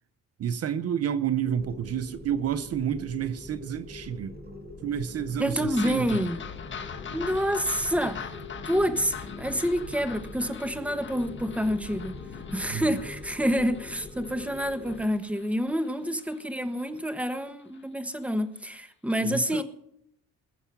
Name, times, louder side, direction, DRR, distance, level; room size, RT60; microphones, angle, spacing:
voice 1, 0.4-4.4 4.8-6.3 12.7-13.0 19.2-19.6, right 9 dB, 55° right, 0.7 m, -30 dB
sound 1, 1.4-15.1, left 2 dB, 35° right, 5.2 m, -44 dB
sound 2, 3.5-15.5, left 7 dB, 65° left, 1.7 m, -46 dB
voice 2, 5.4-6.4 7.1-8.3 8.6-12.2 12.5-19.6, equal, 5° right, 1.3 m, -28 dB
sound 3, 5.7-16.4 16.8-16.9 17.3-17.4 17.7-17.8, left 7 dB, 40° left, 1.3 m, -43 dB
21.0 x 7.1 x 5.8 m
cardioid pair, 90°, 30 cm